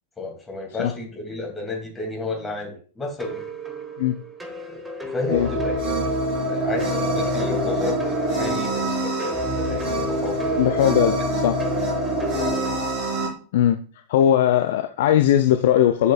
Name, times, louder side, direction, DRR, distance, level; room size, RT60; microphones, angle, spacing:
voice 1, 0.2-3.4 4.7-5.7 6.4-10.6 12.3-12.6, left 3 dB, 15° left, 2.7 m, -32 dB
sound 1, 3.2-12.8, left 1 dB, 10° right, 1.2 m, -35 dB
sound 2, 5.3-13.3, right 1 dB, 40° right, 3.8 m, -25 dB
voice 2, 10.6-11.6 13.5-13.8 14.1-16.1, left 11 dB, 55° left, 0.4 m, -19 dB
11.0 x 5.2 x 2.5 m
figure-of-eight pair, 90°, 0 cm